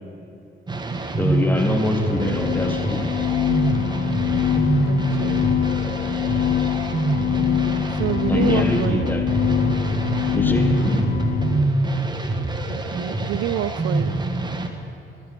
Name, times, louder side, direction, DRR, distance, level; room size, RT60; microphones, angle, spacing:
sound 1, 0.7-14.7, right 2 dB, 20° right, 1.6 m, -25 dB
voice 1, 1.2-3.1 8.3-9.4 10.3-11.3, left 1 dB, 10° left, 4 dB, 2.0 m, -24 dB
sound 2, 2.0-11.7, left 10 dB, 45° left, 0.4 m, -24 dB
voice 2, 4.9-5.5 7.9-9.2 12.7-14.2, right 12 dB, 85° right, 16 dB, 0.6 m, -28 dB
13.0 x 10.5 x 9.7 m, 2.9 s
cardioid pair, 90°, 20 cm